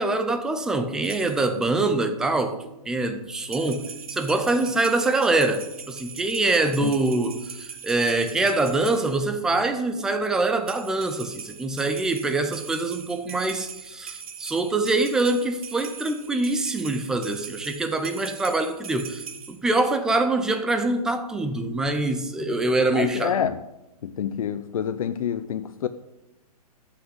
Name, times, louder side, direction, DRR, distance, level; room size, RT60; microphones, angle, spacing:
voice 1, 0.0-2.6 2.9-3.8 4.1-23.4, right 2 dB, 5° right, 0.4 m, -24 dB
sound 1, 1.0-1.6 3.4-9.3 10.6-19.6, right 7 dB, 65° right, 1.9 m, -41 dB
voice 2, 22.9-23.6 24.0-25.9, left 9 dB, 65° left, 0.7 m, -27 dB
14.0 x 6.0 x 8.0 m
hypercardioid pair, 165°, 20 cm